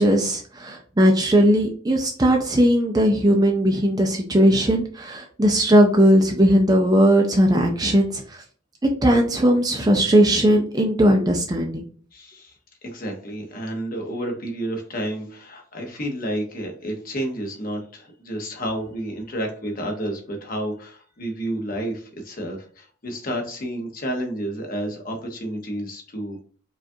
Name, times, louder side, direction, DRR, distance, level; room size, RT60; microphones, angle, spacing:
voice 1, 0.0-8.4 9.0-11.8, equal, 20° right, 2 dB, 0.4 m, -18 dB
voice 2, 12.1-12.5 12.8-26.4, right 1 dB, 40° left, 2 dB, 0.9 m, -30 dB
4.8 x 2.4 x 2.7 m, 0.43 s
head